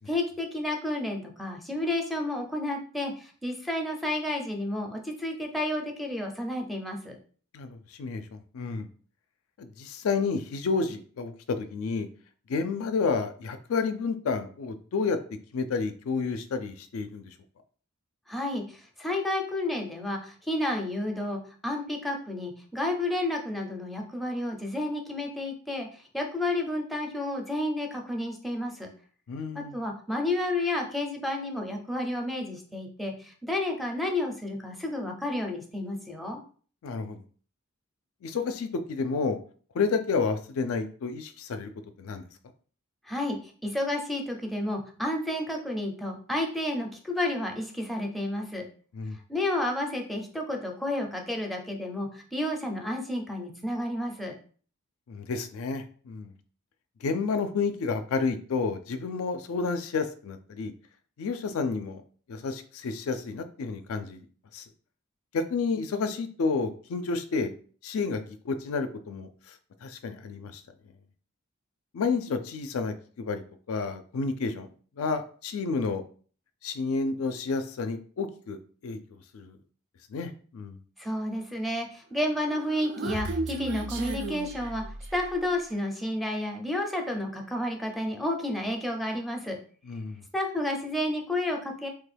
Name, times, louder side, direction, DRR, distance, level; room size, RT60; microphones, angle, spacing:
voice 1, 0.1-7.2 18.3-28.9 29.5-36.4 43.1-48.6 49.3-54.3 81.0-84.8 85.1-89.6 90.3-91.9, left 1 dB, ahead, 1 dB, 0.4 m, -31 dB
voice 2, 7.5-8.9 9.6-12.1 12.5-15.2 15.5-17.3 29.3-29.8 36.8-37.2 38.2-39.4 39.7-41.7 42.0-42.2 48.9-49.2 55.1-56.3 57.0-60.7 61.2-62.0 62.3-64.2 64.5-64.6 65.3-67.5 67.8-69.5 69.8-70.6 71.9-74.7 75.0-76.0 76.6-79.0 79.3-79.6 80.1-80.8 89.8-90.2, left 4 dB, 75° left, 9 dB, 0.4 m, -30 dB
Human voice, 82.4-85.4, right 2 dB, 55° right, 0.4 m, -34 dB
3.2 x 2.2 x 3.3 m, 0.43 s
head